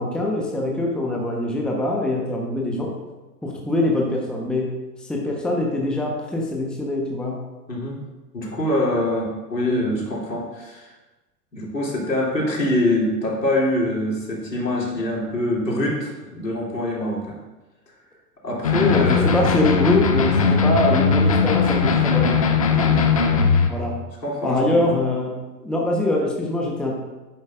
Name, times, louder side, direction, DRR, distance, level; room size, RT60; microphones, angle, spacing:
voice 1, 0.0-3.0 3.4-7.5 18.9-22.4 23.7-24.0 24.4-26.9, left 1 dB, ahead, -2 dB, 1.1 m, -24 dB
voice 2, 7.7-8.0 8.3-10.9 11.5-17.4 18.4-19.3 22.7-23.4 24.2-24.9, left 1 dB, 85° left, -4 dB, 3.0 m, -24 dB
sound 1, 18.6-23.7, left 5 dB, 25° left, 0.3 m, -19 dB
10.5 x 8.7 x 2.5 m, 1.1 s
figure-of-eight pair, 105°, 49 cm